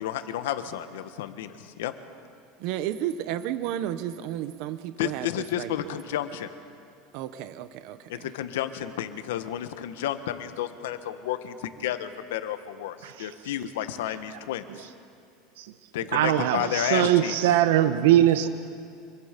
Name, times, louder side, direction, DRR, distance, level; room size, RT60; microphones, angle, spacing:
voice 1, 0.0-1.9 5.0-6.5 8.1-14.6 15.9-17.6, left 11 dB, 90° left, 10 dB, 1.3 m, -31 dB
voice 2, 2.6-5.9 7.1-8.3, right 11 dB, 60° right, 12 dB, 0.9 m, -33 dB
voice 3, 16.1-18.5, right 12 dB, 85° right, 10 dB, 1.0 m, -21 dB
26.0 x 23.0 x 5.2 m, 2.4 s
supercardioid pair, 145°, 0 cm